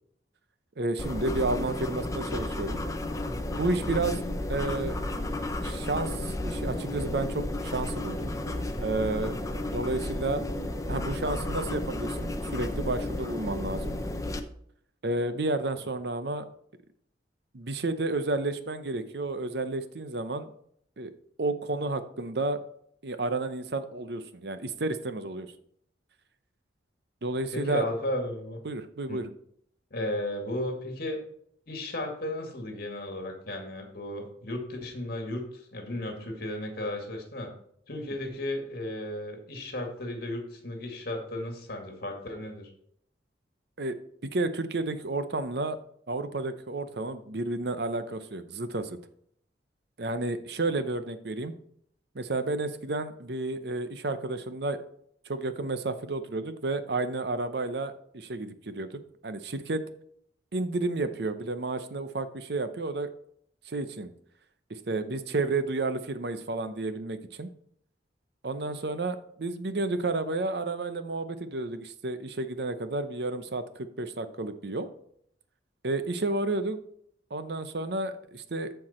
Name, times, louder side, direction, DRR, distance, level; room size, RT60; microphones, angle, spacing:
voice 1, 0.8-2.8 3.5-4.2 4.5-5.0 5.6-8.3 8.8-9.4 9.7-10.4 10.9-14.0 15.0-16.5 17.5-20.5 21.0-21.1 21.4-22.6 23.0-25.5 27.2-27.8 28.6-29.2 43.8-43.9 44.3-45.8 46.1-49.0 50.0-51.5 52.1-54.8 55.3-59.8 60.5-63.1 63.7-64.1 64.7-67.5 68.4-74.9 75.8-76.8 77.3-78.7, right 2 dB, 60° right, 11 dB, 0.7 m, -31 dB
sound 1, 1.0-14.4, left 1 dB, 20° left, 0.7 m, -32 dB
voice 2, 4.1-4.5 27.5-28.6 29.1-29.2 29.9-31.2 31.7-37.5 37.9-42.7, left 1 dB, 55° left, 3 dB, 2.2 m, -34 dB
14.0 x 4.7 x 4.3 m, 0.68 s
head